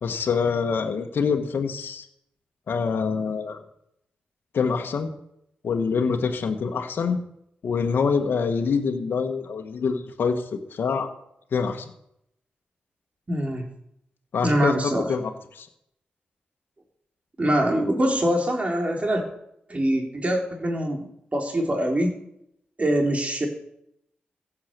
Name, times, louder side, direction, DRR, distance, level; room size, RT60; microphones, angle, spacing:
voice 1, 0.0-2.1 2.7-3.6 4.5-5.1 5.6-7.2 7.6-11.1 11.5-11.9 14.3-14.7 15.1-15.7, left 5 dB, 70° left, 4 dB, 1.5 m, -25 dB
voice 2, 13.3-13.6 14.4-15.1 17.4-19.2 19.7-21.0 21.3-22.1 22.8-23.5, right 1 dB, 35° right, 2 dB, 4.0 m, -23 dB
15.0 x 7.4 x 6.8 m, 0.77 s
supercardioid pair, 45°, 4 cm